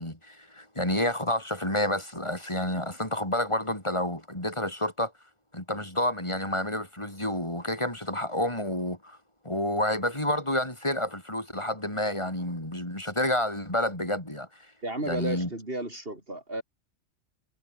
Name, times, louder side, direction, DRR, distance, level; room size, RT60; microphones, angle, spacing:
voice 1, 0.0-5.1 5.5-9.2 9.4-14.5 15.0-15.5, left 1 dB, 25° left, 5.6 m, -29 dB
voice 2, 14.8-16.6, right 1 dB, 55° right, 6.0 m, -33 dB
omnidirectional pair, 1.2 m